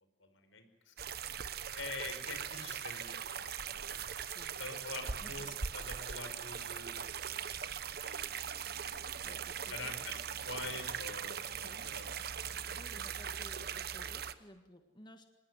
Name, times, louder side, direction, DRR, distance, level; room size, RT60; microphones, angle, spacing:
voice 1, 0.2-0.9 1.2-1.3 1.7-4.0 4.6-7.1 7.8-9.0 9.7-12.2, left 3 dB, 80° left, 8 dB, 5.0 m, -46 dB
sound 1, 1.0-14.3, right 7 dB, 50° right, 1.1 m, -40 dB
voice 2, 4.1-4.6 5.2-5.6 9.2-10.4 11.3-11.9 12.5-15.3, left 1 dB, 25° left, 7 dB, 1.7 m, -57 dB
26.0 x 20.0 x 9.7 m, 1.1 s
head